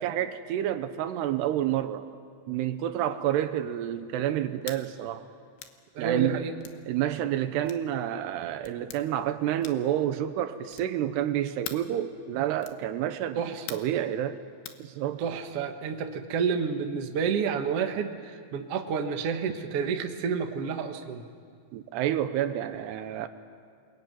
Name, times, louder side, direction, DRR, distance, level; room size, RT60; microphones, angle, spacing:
voice 1, 0.0-2.0 2.5-5.3 6.0-6.4 6.9-14.4 14.8-15.2 21.7-23.3, right 11 dB, 75° right, 2.9 m, -29 dB
sound 1, 4.6-4.8 5.6-5.8 6.6-6.8 7.7-7.9 8.6-9.0 9.6-9.9 10.7-11.0 11.6-11.9 12.6-12.8 13.7-14.0 14.7-14.8, left 11 dB, 80° left, 3.4 m, -42 dB
voice 2, 5.9-6.5 13.4-13.7 15.2-21.2, right 6 dB, 60° right, 1.5 m, -29 dB
28.0 x 22.0 x 9.3 m
omnidirectional pair, 5.0 m